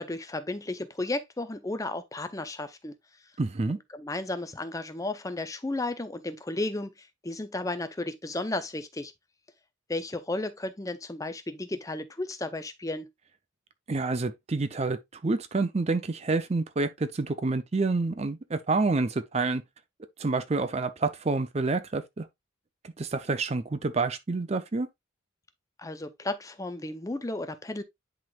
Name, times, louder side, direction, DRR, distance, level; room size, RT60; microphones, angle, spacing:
voice 1, 0.0-3.0 3.9-9.1 9.9-13.1 25.8-27.8, left 2 dB, 15° left, 0.5 m, -33 dB
voice 2, 3.4-3.8 13.9-19.6 20.2-22.3 22.8-24.9, right 3 dB, 30° right, 0.5 m, -28 dB
10.5 x 3.8 x 2.3 m
head